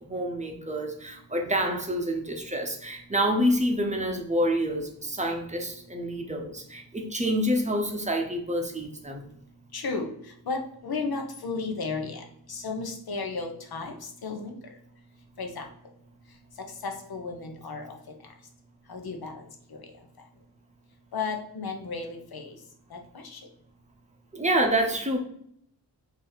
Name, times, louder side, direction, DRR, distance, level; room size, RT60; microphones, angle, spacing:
voice 1, 0.0-9.2 24.3-25.2, equal, 15° right, 1 dB, 0.8 m, -27 dB
voice 2, 9.7-10.1 10.5-13.9 14.2-14.5 15.4-15.7 16.8-17.9 18.9-19.4 19.7-19.8 21.1-22.5 22.9-23.4, left 4 dB, 60° left, 3 dB, 0.9 m, -33 dB
4.7 x 2.8 x 4.0 m, 0.70 s
wide cardioid pair, 115°, 41 cm